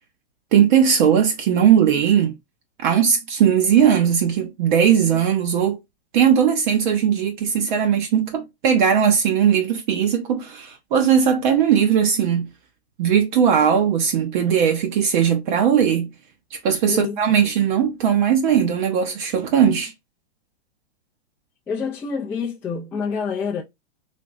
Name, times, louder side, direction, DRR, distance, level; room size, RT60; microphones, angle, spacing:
voice 1, 0.5-2.3 2.8-5.8 6.1-12.5 13.0-16.1 16.5-19.9, right 8 dB, 50° right, 0.8 m, -18 dB
voice 2, 16.9-17.2 21.7-23.6, left 5 dB, 5° left, 0.4 m, -27 dB
3.4 x 2.9 x 2.5 m
hypercardioid pair, 150°, 32 cm